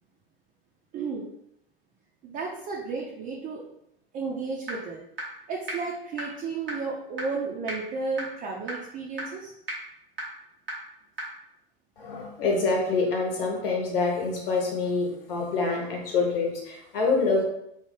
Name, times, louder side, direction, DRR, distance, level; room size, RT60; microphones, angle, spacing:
voice 1, 0.9-1.2 2.2-3.6 4.1-5.0 5.5-9.5, right 4 dB, 30° right, -2 dB, 0.5 m, -33 dB
sound 1, 4.7-4.8 5.2-5.3 5.7-5.8 6.2-6.3 6.7-6.8 7.2-7.3 7.7-7.8 8.2-8.3 8.7-8.8 9.2-9.3 9.7-9.8 10.2-10.3 10.7-10.8 11.2-11.3, right 1 dB, 90° right, 0.9 m, -32 dB
voice 2, 12.0-17.4, left 4 dB, 70° left, 0 dB, 0.9 m, -26 dB
3.2 x 2.2 x 3.1 m, 0.78 s
figure-of-eight pair, 85°, 29 cm